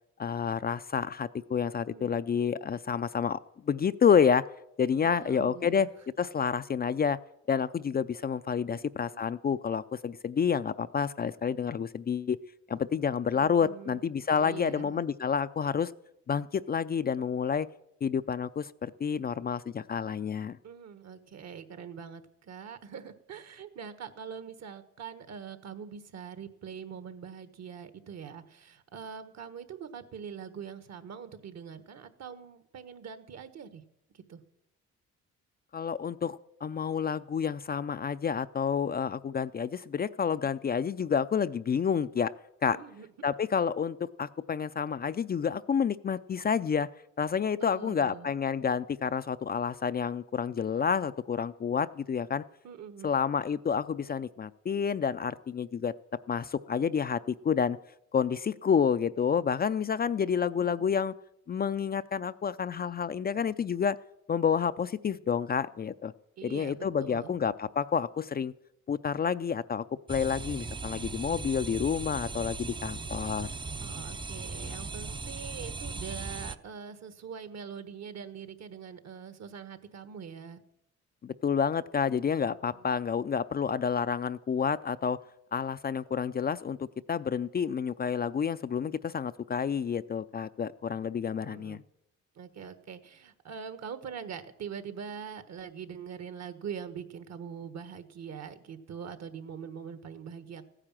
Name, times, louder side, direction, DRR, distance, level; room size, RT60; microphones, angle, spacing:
voice 1, 0.2-4.5 4.8-5.9 6.2-7.2 7.5-12.4 12.7-15.9 16.3-17.7 18.0-20.6 35.7-42.3 42.6-42.8 43.2-46.9 47.2-52.4 53.0-56.0 56.3-57.8 58.1-61.1 61.5-64.0 64.3-66.1 66.4-68.5 68.9-73.5 81.2-85.2 85.5-91.8, left 7 dB, 30° left, 13 dB, 0.4 m, -29 dB
voice 2, 5.0-5.9 8.7-8.8 9.1-9.2 13.0-14.0 14.3-15.1 20.6-33.8 34.1-34.4 42.7-43.1 47.6-48.4 52.6-53.1 60.6-60.9 66.4-67.4 73.8-80.6 82.5-82.9 91.4-91.8 92.3-100.7, right 7 dB, 60° right, 11 dB, 1.4 m, -43 dB
sound 1, 70.1-76.6, right 3 dB, 15° right, 0.5 m, -38 dB
15.0 x 9.9 x 7.5 m, 0.80 s
cardioid pair, 90°, 30 cm